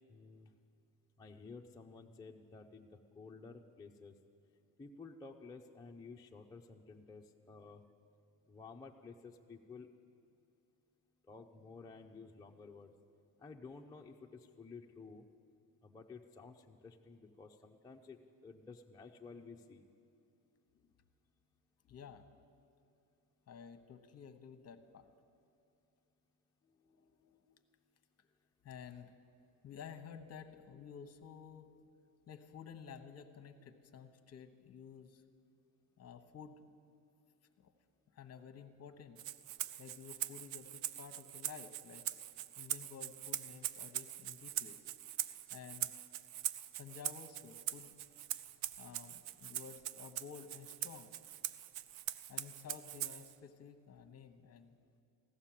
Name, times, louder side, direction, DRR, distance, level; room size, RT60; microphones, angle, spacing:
voice 1, 0.1-0.5 1.2-4.1 4.8-7.8 8.5-9.9 11.3-12.9 13.4-15.3 15.8-19.8, left 4 dB, 10° left, -1 dB, 0.5 m, -53 dB
voice 2, 21.8-22.3 23.5-25.1 26.6-27.6 28.6-29.1 29.6-31.7 32.3-35.2 36.0-36.6 37.6-37.7 38.1-39.2 39.8-42.1 42.6-44.8 45.5-45.9 46.8-47.9 48.8-51.1 52.3-54.8, left 7 dB, 35° left, 9 dB, 1.0 m, -52 dB
Rattle (instrument), 39.2-53.4, right 13 dB, 75° right, 0.6 m, -43 dB
15.5 x 11.0 x 7.4 m, 2.5 s
cardioid pair, 125°, 45 cm